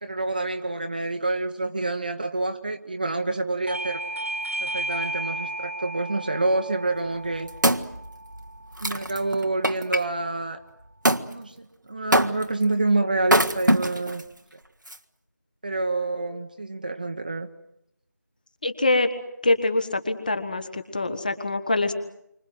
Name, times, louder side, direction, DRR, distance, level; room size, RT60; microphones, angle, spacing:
voice 1, 0.0-4.0 4.6-7.5 8.8-10.6 11.3-14.2 15.6-17.5, right 2 dB, 25° right, 7 dB, 1.2 m, -27 dB
Bell / Doorbell, 3.7-8.8, right 2 dB, 45° right, 1.8 m, -34 dB
Wood, 7.0-10.0 11.1-11.3 12.1-12.6 13.2-14.2 14.9-15.0, right 1 dB, 85° right, 1.6 m, -23 dB
voice 2, 18.6-19.1 19.4-21.9, left 2 dB, 25° left, 10 dB, 1.7 m, -24 dB
29.0 x 25.0 x 8.0 m, 0.78 s
figure-of-eight pair, 170°, 10 cm